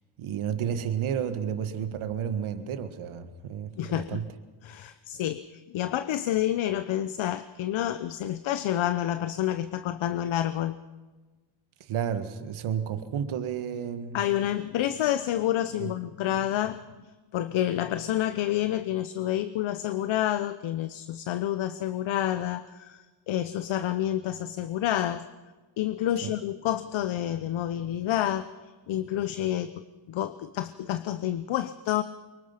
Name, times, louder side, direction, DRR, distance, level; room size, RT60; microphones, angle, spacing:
voice 1, 0.2-4.3 11.8-14.2 15.8-15.9 26.2-26.3, right 8 dB, 75° right, 9 dB, 1.8 m, -31 dB
voice 2, 3.8-4.2 4.6-10.8 14.1-17.1 17.3-25.3 25.8-28.5 28.9-32.0, left 12 dB, 70° left, 12 dB, 0.9 m, -29 dB
24.5 x 23.0 x 5.9 m, 1.3 s
cardioid pair, 90°, 49 cm